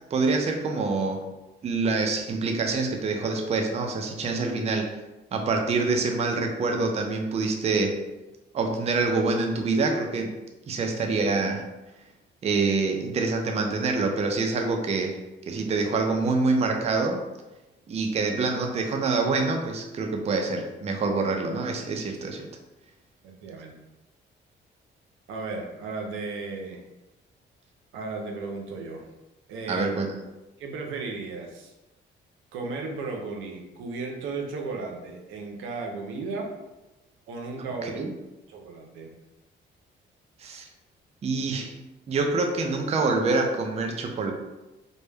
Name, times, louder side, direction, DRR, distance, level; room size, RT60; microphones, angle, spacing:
voice 1, 0.1-1.2 1.6-4.9 5.3-8.0 8.5-10.3 10.7-11.6 12.4-15.2 15.5-17.2 17.9-22.5 29.7-30.1 37.8-38.1 40.4-40.7 41.2-41.8 42.1-44.3, right 3 dB, 35° right, 3 dB, 0.4 m, -26 dB
voice 2, 23.2-23.7 25.3-26.8 27.9-29.1 29.5-29.9 30.6-31.7 32.5-36.5 37.3-38.0 38.5-39.1, right 3 dB, 85° right, 1 dB, 0.5 m, -35 dB
2.1 x 2.1 x 3.2 m, 1.0 s
cardioid pair, 90°, 20 cm